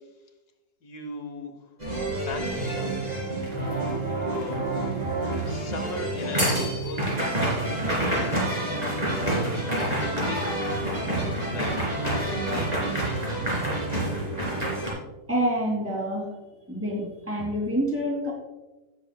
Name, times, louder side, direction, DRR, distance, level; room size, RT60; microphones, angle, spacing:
voice 1, 0.8-1.5 2.3-3.0 4.2-4.8 5.5-7.5 8.0-10.5 11.5-13.0, left 3 dB, 80° left, 4 dB, 1.6 m, -38 dB
sound 1, 1.8-14.9, right 1 dB, 25° right, 3.4 m, -28 dB
voice 2, 15.3-16.4 16.7-18.3, equal, 10° right, -3 dB, 2.7 m, -27 dB
17.5 x 6.9 x 2.3 m, 1.1 s
omnidirectional pair, 1.7 m